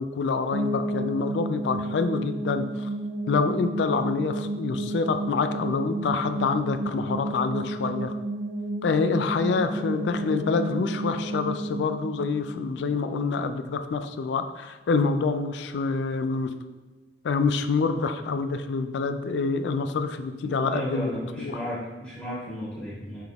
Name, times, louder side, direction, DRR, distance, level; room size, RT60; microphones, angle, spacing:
voice 1, 0.0-2.9 3.3-8.2 8.8-16.5 17.2-21.1 21.4-21.6, left 4 dB, 80° left, 9 dB, 0.3 m, -27 dB
sound 1, 0.5-13.4, right 1 dB, 90° right, 0.4 m, -32 dB
voice 2, 20.4-23.2, equal, 5° left, -9 dB, 1.2 m, -34 dB
5.8 x 3.4 x 2.4 m, 1.2 s
head